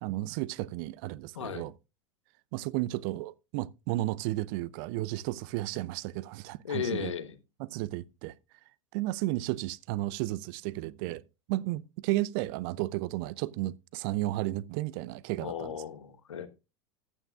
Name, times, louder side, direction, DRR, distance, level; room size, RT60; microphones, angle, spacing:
voice 1, 0.0-1.7 2.5-7.1 7.6-8.3 8.9-11.2 11.5-15.8, right 17 dB, 45° right, 0.5 m, -33 dB
voice 2, 6.6-7.4 15.4-16.5, left 7 dB, 70° left, 1.2 m, -35 dB
14.5 x 8.9 x 2.3 m
figure-of-eight pair, 85°, 16 cm